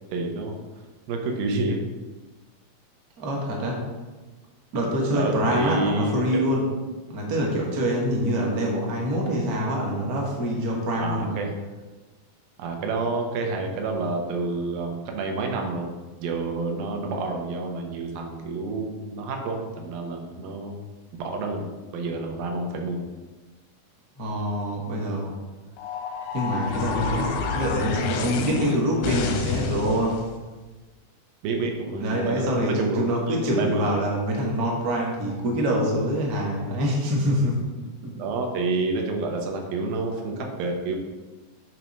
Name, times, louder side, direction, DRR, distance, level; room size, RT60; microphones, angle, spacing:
voice 1, 0.1-0.5 1.1-1.8 5.1-6.2 11.0-11.5 12.6-15.9 16.2-20.8 21.2-23.0 31.4-33.9 38.2-41.0, right 3 dB, 80° right, 2 dB, 2.7 m, -29 dB
voice 2, 3.2-3.8 4.7-6.6 7.1-11.4 24.2-25.3 26.3-30.2 32.0-37.6 38.0-38.1, equal, 65° right, -2 dB, 0.9 m, -25 dB
sound 1, 25.8-30.3, left 5 dB, 85° left, 2.4 m, -29 dB
8.9 x 3.1 x 5.3 m, 1.2 s
omnidirectional pair, 4.0 m